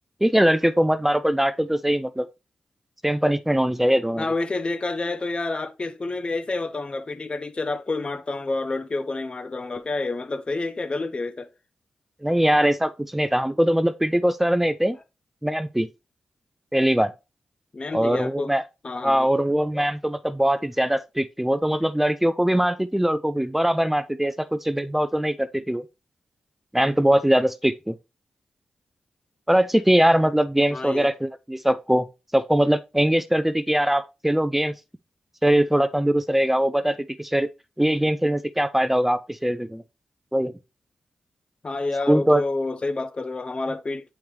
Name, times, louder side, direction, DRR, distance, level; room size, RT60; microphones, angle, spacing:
voice 1, 0.2-2.3 3.0-4.3 12.2-15.0 15.4-15.9 16.7-17.1 17.9-18.6 19.0-25.8 26.7-28.0 29.5-32.1 32.3-34.7 35.4-37.5 37.8-39.8 40.3-40.6 42.1-42.4, right 1 dB, 10° right, 0.4 m, -21 dB
voice 2, 4.2-11.5 17.7-18.5 18.8-19.3 30.7-31.1 41.6-44.1, left 3 dB, 40° left, 0.6 m, -29 dB
7.1 x 4.7 x 2.9 m
cardioid pair, 50°, 3 cm